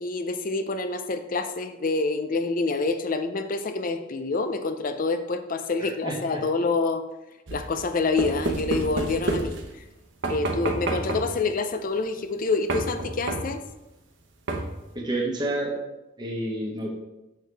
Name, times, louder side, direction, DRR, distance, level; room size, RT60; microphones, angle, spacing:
voice 1, 0.0-7.0 7.5-9.6 10.3-13.6, left 3 dB, 40° left, 8 dB, 0.5 m, -27 dB
sound 1, 7.5-9.9 10.2-11.4 12.7-13.7 14.5-14.9, right 2 dB, 60° right, 1.0 m, -30 dB
voice 2, 14.9-15.7 16.2-16.9, right 1 dB, 20° right, -1 dB, 1.2 m, -28 dB
6.5 x 6.4 x 3.4 m, 0.99 s
head